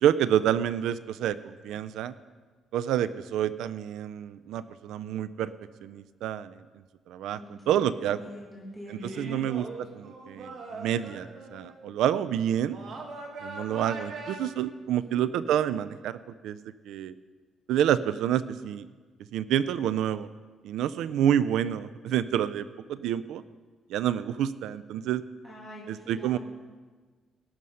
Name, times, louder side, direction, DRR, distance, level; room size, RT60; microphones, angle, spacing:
voice 1, 0.0-2.1 2.7-5.5 5.8-6.6 7.1-8.3 8.9-9.7 9.9-12.8 13.4-16.2 16.4-16.6 16.9-17.1 17.7-18.9 19.3-20.3 20.6-23.4 23.9-25.2 25.9-26.4, right 10 dB, 80° right, 14 dB, 0.4 m, -28 dB
voice 2, 7.4-9.4 14.9-15.2 25.4-26.4, equal, 5° right, -5 dB, 2.2 m, -44 dB
sound 1, 8.1-8.5 8.9-11.7 12.7-14.4, right 3 dB, 50° right, 1.6 m, -41 dB
18.5 x 6.4 x 5.5 m, 1.4 s
cardioid pair, 180°, 0 cm